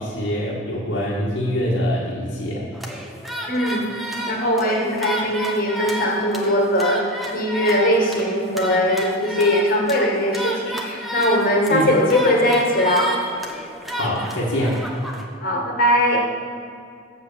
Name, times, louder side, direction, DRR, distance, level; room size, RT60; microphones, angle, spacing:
voice 1, 0.0-2.7 11.7-11.8 13.9-14.8, equal, 70° left, -7 dB, 1.8 m, -24 dB
sound 1, 2.7-15.3, right 1 dB, ahead, 1.0 m, -31 dB
voice 2, 3.5-3.9 4.3-7.0 7.3-13.1 15.4-16.2, left 1 dB, 50° left, -1 dB, 1.8 m, -20 dB
7.7 x 7.5 x 7.0 m, 2.3 s
head